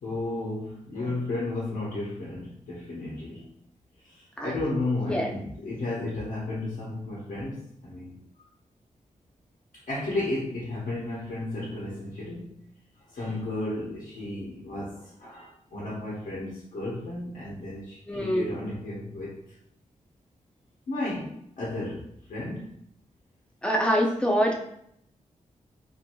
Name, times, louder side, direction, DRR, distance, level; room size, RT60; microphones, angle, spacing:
voice 1, 0.0-3.5 4.0-8.1 9.9-12.6 13.1-19.4 20.9-22.7, left 2 dB, 75° left, -6 dB, 0.9 m, -33 dB
voice 2, 18.1-18.5 23.6-24.6, equal, 5° left, 0 dB, 0.4 m, -24 dB
2.6 x 2.6 x 2.8 m, 0.73 s
wide cardioid pair, 150°, 14 cm